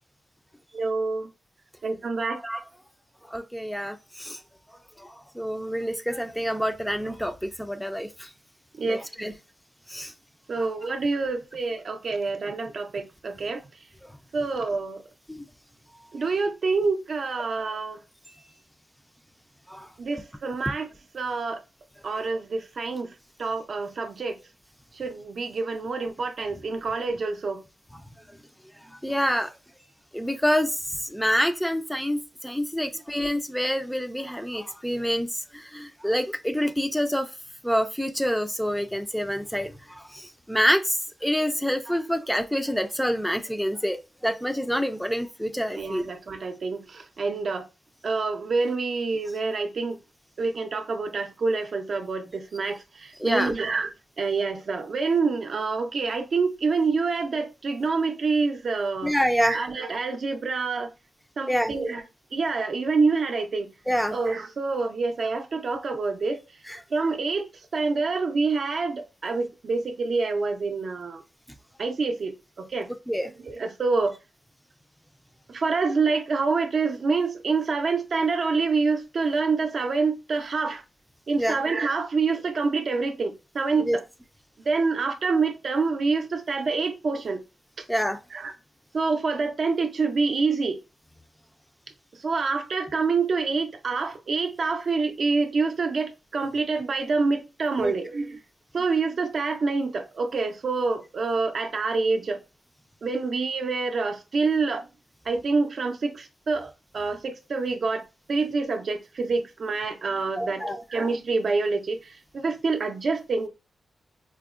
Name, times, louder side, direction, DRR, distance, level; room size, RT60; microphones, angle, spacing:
voice 1, 0.7-1.3 1.8-2.4 8.8-9.3 10.5-13.6 14.3-15.0 16.1-18.0 20.0-20.9 21.1-21.6 22.0-23.1 23.4-24.4 25.0-27.6 45.7-47.6 48.0-50.0 50.4-53.9 54.2-59.1 59.5-60.9 61.4-62.0 62.3-63.7 64.1-66.4 66.9-71.2 71.8-72.9 73.5-74.1 75.5-80.8 81.3-83.9 84.7-87.4 88.3-88.5 88.9-90.8 92.2-98.4 98.7-102.4 103.0-104.9 105.3-112.0 112.3-113.5, right 4 dB, 60° right, 0.5 m, -27 dB
voice 2, 3.3-4.4 5.0-8.3 8.8-9.3 9.9-10.1 10.6-10.7 15.3-15.4 19.7-19.9 22.1-22.3 28.9-29.5 30.1-37.3 37.6-46.1 53.2-53.5 59.0-59.6 61.5-61.7 63.9-64.2 66.7-66.8 73.1-73.3 81.4-81.6 83.8-84.0 87.9-88.2 97.8-97.9 110.4-110.8, equal, ahead, 0.4 m, -27 dB
4.5 x 2.1 x 2.4 m
cardioid pair, 90°, 0 cm